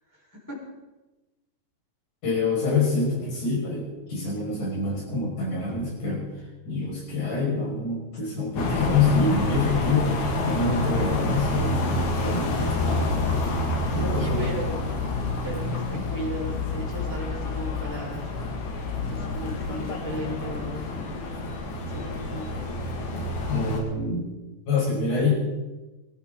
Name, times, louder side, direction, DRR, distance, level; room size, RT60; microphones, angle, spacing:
voice 1, 0.1-0.6 13.9-14.9 15.4-18.3 19.1-21.3 21.9-22.5 22.9-23.1, equal, 5° left, -6 dB, 4.3 m, -36 dB
voice 2, 2.2-6.2 6.7-10.1 10.4-13.1 13.9-14.5 15.7-16.0 23.5-24.3 24.7-25.3, left 3 dB, 50° left, -3 dB, 7.1 m, -26 dB
sound 1, 8.6-23.8, left 2 dB, 75° left, 4.2 m, -28 dB
24.0 x 14.0 x 3.9 m, 1.1 s
omnidirectional pair, 4.5 m